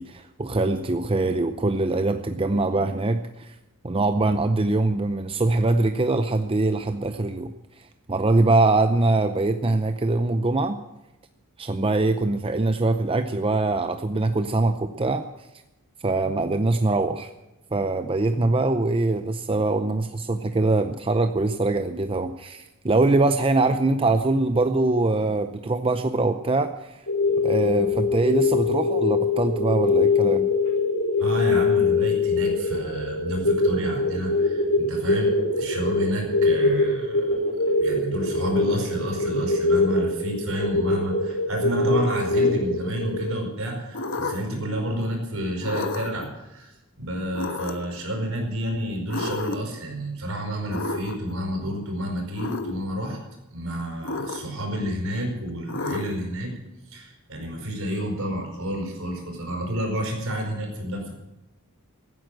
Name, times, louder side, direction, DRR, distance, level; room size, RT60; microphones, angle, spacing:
voice 1, 0.0-3.6 3.8-10.8 11.6-15.2 16.0-17.3 17.7-27.0 27.4-30.5, right 2 dB, 25° right, 8 dB, 0.6 m, -23 dB
sound 1, 27.1-43.4, left 3 dB, 80° left, 3.6 m, -23 dB
voice 2, 31.2-37.4 37.8-53.2 53.5-56.5 56.9-61.1, equal, 65° right, 3 dB, 5.1 m, -30 dB
sound 2, 43.9-44.6 45.6-46.3 47.3-48.0 49.1-49.8 50.7-51.3 52.3-52.8 54.0-54.7 55.7-56.3, left 2 dB, 60° left, 1.3 m, -31 dB
15.5 x 9.5 x 7.7 m, 0.99 s
head